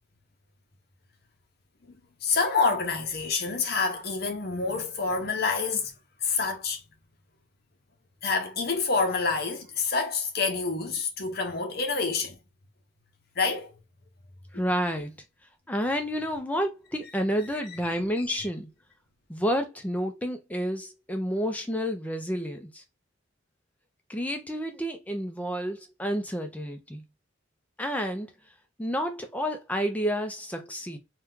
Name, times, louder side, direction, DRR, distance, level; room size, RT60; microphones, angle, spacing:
voice 1, 1.9-5.9 6.2-6.8 8.2-12.4 13.4-13.7 14.5-14.6 17.9-18.0 18.3-18.4, left 4 dB, 50° left, 0.8 m, -27 dB
voice 2, 14.5-15.1 15.7-18.7 19.3-22.8 24.1-27.0 27.8-28.3 28.8-31.0, equal, 5° left, 0.5 m, -30 dB
2.8 x 2.3 x 3.5 m
head